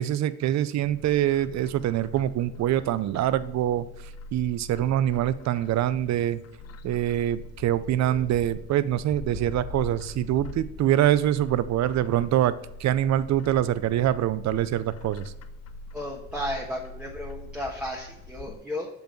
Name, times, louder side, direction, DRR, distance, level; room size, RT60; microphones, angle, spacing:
voice 1, 0.0-3.9 4.3-6.4 6.8-12.5 12.8-15.2, right 12 dB, 65° right, 15 dB, 0.5 m, -24 dB
Bird, 0.8-18.6, left 3 dB, 55° left, 0.6 m, -43 dB
voice 2, 15.9-18.9, equal, 5° right, -3 dB, 1.4 m, -34 dB
6.9 x 5.3 x 3.1 m, 0.90 s
cardioid pair, 90°, 30 cm